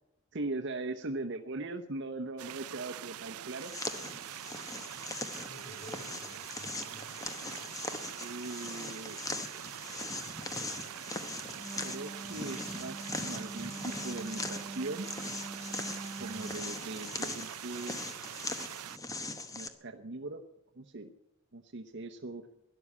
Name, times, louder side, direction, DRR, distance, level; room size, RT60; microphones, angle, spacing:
voice 1, 0.3-3.7 8.2-9.3 11.8-15.1 16.2-18.0 19.5-20.4 20.8-21.1 21.5-22.5, right 2 dB, 55° right, 5 dB, 0.8 m, -40 dB
sound 1, 2.4-19.0, right 12 dB, 85° right, 0.4 m, -44 dB
sound 2, 3.6-19.7, left 3 dB, 15° left, 0.9 m, -41 dB
voice 2, 5.5-7.2 10.4-11.0 16.2-16.5, equal, 45° left, 3 dB, 3.7 m, -52 dB
Wind instrument woodwind instrument, 11.5-16.7, right 2 dB, 15° right, 0.7 m, -44 dB
12.5 x 11.0 x 8.3 m, 0.92 s
head